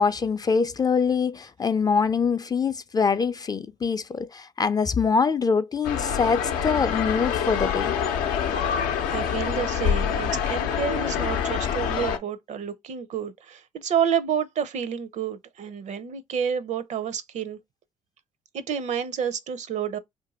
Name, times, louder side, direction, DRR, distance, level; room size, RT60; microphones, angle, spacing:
voice 1, 0.0-7.9, left 5 dB, 25° left, 0.4 m, -24 dB
sound 1, 5.8-12.2, left 8 dB, 80° left, 0.6 m, -26 dB
voice 2, 8.8-17.6 18.5-20.0, right 8 dB, 60° right, 0.5 m, -29 dB
2.6 x 2.5 x 4.0 m
supercardioid pair, 60°, 14 cm